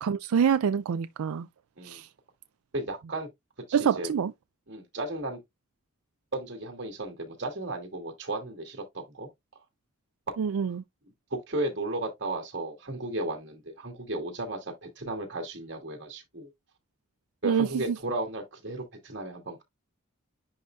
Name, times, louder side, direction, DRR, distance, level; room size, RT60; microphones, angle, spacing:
voice 1, 0.0-1.5 1.8-2.1 3.7-4.3 10.4-10.8 17.4-18.0, right 7 dB, 85° right, 0.4 m, -26 dB
voice 2, 2.7-3.3 3.7-4.1 4.7-5.4 6.3-9.3 11.3-16.5 17.4-19.6, right 2 dB, 55° right, 2.5 m, -34 dB
10.5 x 3.8 x 2.3 m
head